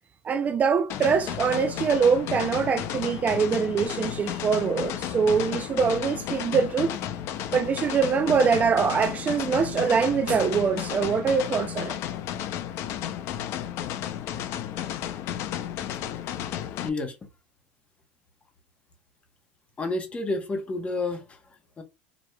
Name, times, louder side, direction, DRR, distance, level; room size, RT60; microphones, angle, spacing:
voice 1, 0.2-7.0 7.5-12.0, right 6 dB, 30° right, 0.4 m, -24 dB
sound 1, 0.9-16.9, left 11 dB, 55° left, 0.5 m, -33 dB
voice 2, 16.8-17.1 19.8-21.2 21.8-21.9, left 2 dB, 25° left, 1.1 m, -29 dB
4.8 x 3.0 x 2.3 m
supercardioid pair, 105°, 5 cm